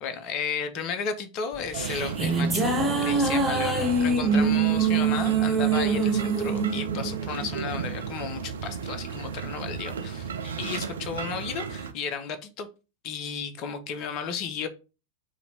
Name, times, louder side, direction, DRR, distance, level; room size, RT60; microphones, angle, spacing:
voice 1, 0.0-12.7 13.0-14.7, left 6 dB, 40° left, 0.6 m, -34 dB
sound 1, 1.5-8.1, right 4 dB, 15° right, 0.6 m, -25 dB
sound 2, 1.7-11.9, right 6 dB, 65° right, 0.4 m, -34 dB
2.8 x 2.6 x 4.3 m
figure-of-eight pair, 90°, 0 cm